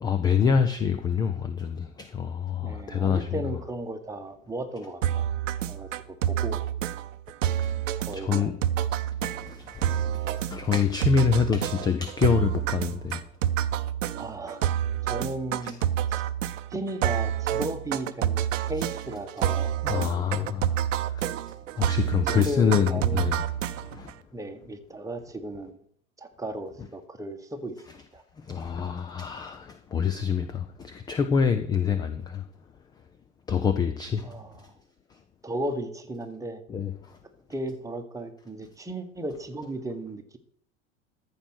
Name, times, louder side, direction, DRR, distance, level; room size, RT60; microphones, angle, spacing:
voice 1, 0.0-3.3 7.6-7.7 8.1-8.5 9.2-13.2 15.6-15.7 19.8-21.2 21.8-23.4 23.8-24.1 28.4-32.4 33.5-34.3 36.7-37.2, left 6 dB, 10° left, 0.4 m, -26 dB
voice 2, 2.6-5.2 5.7-6.6 8.0-8.5 14.1-14.6 15.1-15.8 16.1-16.3 16.7-20.6 22.2-23.3 24.3-25.8 26.2-27.8 28.1-28.2 34.2-34.8 35.4-36.6 37.5-40.4, right 1 dB, 10° right, 1.3 m, -35 dB
sound 1, 5.0-24.1, right 10 dB, 65° right, 0.7 m, -28 dB
14.0 x 4.7 x 6.2 m
figure-of-eight pair, 85°, 40 cm